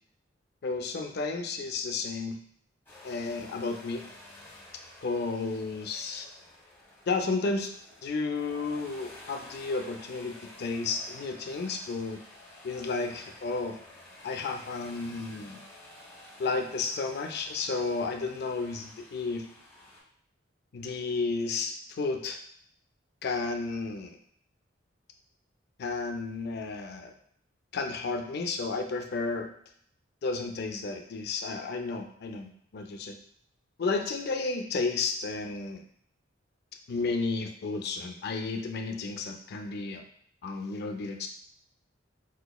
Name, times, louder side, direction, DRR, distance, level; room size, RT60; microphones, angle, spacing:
voice 1, 0.6-2.4 3.0-4.0 5.0-6.3 7.1-7.7 8.0-12.2 12.6-13.8 14.2-15.6 16.4-19.4 20.7-22.4 23.2-24.2 25.8-27.1 27.7-29.5 30.2-33.1 33.8-35.8 36.9-40.0 40.4-41.3, left 3 dB, 55° left, 5 dB, 0.4 m, -32 dB
sound 1, 2.9-20.0, left 1 dB, 10° left, 1.0 m, -51 dB
4.4 x 2.9 x 2.3 m, 0.64 s
head